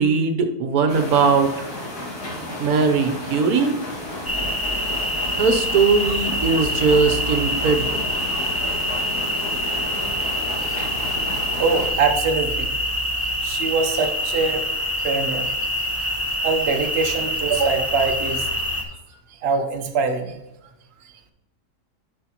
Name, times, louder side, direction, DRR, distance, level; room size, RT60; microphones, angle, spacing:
voice 1, 0.0-1.7 2.6-3.7 5.3-8.1, right 4 dB, 70° right, 6 dB, 1.3 m, -20 dB
sound 1, 0.9-11.9, left 1 dB, 75° left, 2.6 m, -33 dB
sound 2, 4.3-18.8, equal, 15° left, 0.6 m, -25 dB
voice 2, 11.6-12.7 13.2-14.6 15.0-15.5 16.4-18.5 19.1-20.4, right 4 dB, 50° right, 4 dB, 1.0 m, -23 dB
11.0 x 5.6 x 3.0 m, 0.95 s
omnidirectional pair, 1.7 m